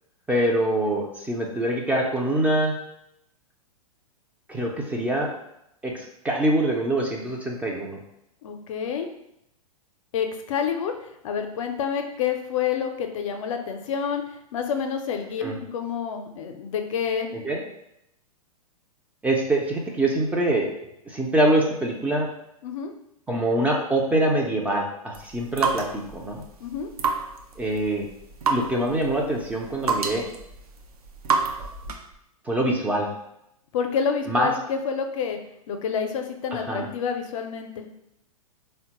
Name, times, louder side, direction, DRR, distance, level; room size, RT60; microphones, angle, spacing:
voice 1, 0.3-2.7 4.5-5.3 5.8-8.0 15.4-15.6 17.3-17.6 19.2-22.3 23.3-26.4 27.6-28.1 28.5-30.3 32.5-33.1 34.3-34.5 36.5-36.9, right 1 dB, 5° right, -1 dB, 0.4 m, -24 dB
voice 2, 8.4-9.1 10.1-10.9 11.2-14.2 14.5-15.4 15.7-17.3 22.6-22.9 26.6-26.9 33.7-35.4 35.7-37.9, left 7 dB, 55° left, 5 dB, 0.5 m, -28 dB
sound 1, 25.1-32.1, right 5 dB, 75° right, 0.5 m, -29 dB
3.6 x 2.1 x 2.9 m, 0.79 s
hypercardioid pair, 110°, 19 cm